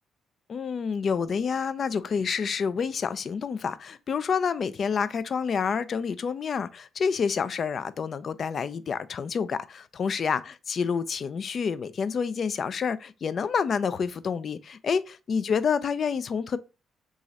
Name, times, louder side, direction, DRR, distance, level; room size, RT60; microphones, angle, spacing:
voice 1, 0.5-16.6, left 6 dB, 50° left, 0.3 m, -28 dB
3.1 x 2.4 x 3.9 m
cardioid pair, 90°, 0 cm